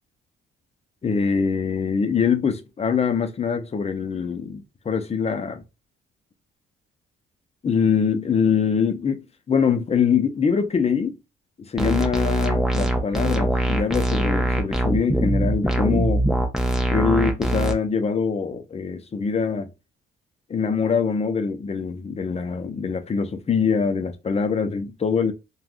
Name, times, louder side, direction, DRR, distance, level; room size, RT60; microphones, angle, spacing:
voice 1, 1.0-5.6 7.6-11.2 11.6-16.2 16.9-19.7 20.5-25.3, left 6 dB, 30° left, 0.6 m, -23 dB
sound 1, 11.8-17.7, right 1 dB, ahead, 0.7 m, -22 dB
3.3 x 2.3 x 2.4 m
cardioid pair, 90°, 20 cm